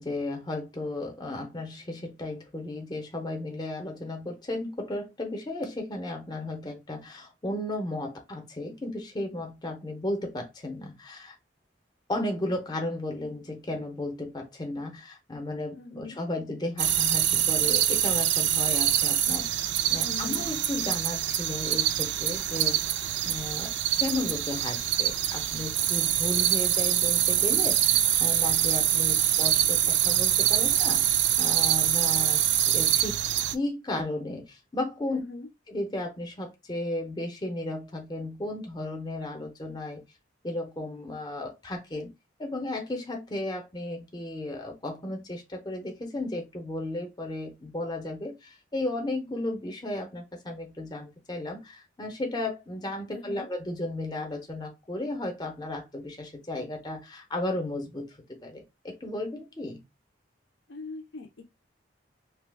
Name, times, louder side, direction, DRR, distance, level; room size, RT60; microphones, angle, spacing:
voice 1, 0.0-11.4 12.1-22.8 23.2-32.4 32.7-33.2 33.5-35.2 35.7-40.0 40.4-42.1 42.4-58.2 58.4-59.8, left 2 dB, 20° left, 0.6 m, -34 dB
voice 2, 15.7-16.2 20.0-20.5 35.1-35.5 53.1-53.5 60.7-61.4, left 4 dB, 75° left, 0.6 m, -41 dB
sound 1, 16.8-33.6, right 11 dB, 70° right, 0.4 m, -25 dB
2.8 x 2.2 x 3.3 m
head